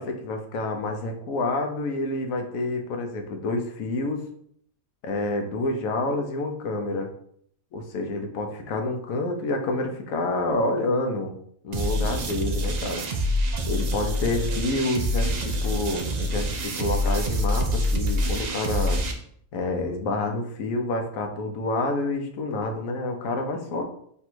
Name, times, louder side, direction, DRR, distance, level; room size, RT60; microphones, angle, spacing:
voice 1, 0.0-4.2 5.0-7.1 7.7-11.3 11.6-13.1 13.7-19.0 19.5-23.8, left 2 dB, 80° left, 4 dB, 1.1 m, -28 dB
sound 1, 11.7-19.1, equal, 80° right, 0.3 m, -26 dB
3.4 x 2.6 x 4.4 m, 0.65 s
omnidirectional pair, 1.4 m